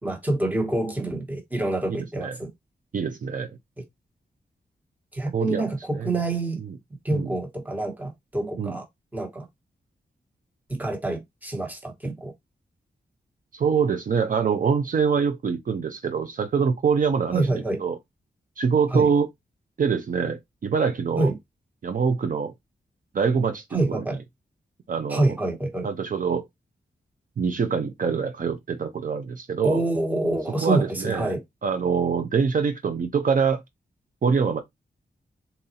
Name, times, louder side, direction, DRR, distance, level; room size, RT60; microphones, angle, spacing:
voice 1, 0.0-2.5 5.1-6.6 7.0-8.9 9.1-9.4 10.7-12.3 17.3-17.8 18.9-19.1 21.2-21.4 23.7-24.2 25.1-25.9 29.6-31.4, right 2 dB, 10° right, 1.2 m, -26 dB
voice 2, 2.9-3.5 5.3-5.7 5.9-6.1 6.6-6.7 7.1-7.3 8.6-8.8 13.5-18.0 18.6-19.3 19.8-21.3 21.8-22.5 23.1-24.0 24.9-25.3 25.8-26.5 27.4-29.8 30.6-31.3 31.6-33.6 34.2-34.6, right 6 dB, 50° right, 0.6 m, -24 dB
4.0 x 3.9 x 2.7 m
wide cardioid pair, 180°, 18 cm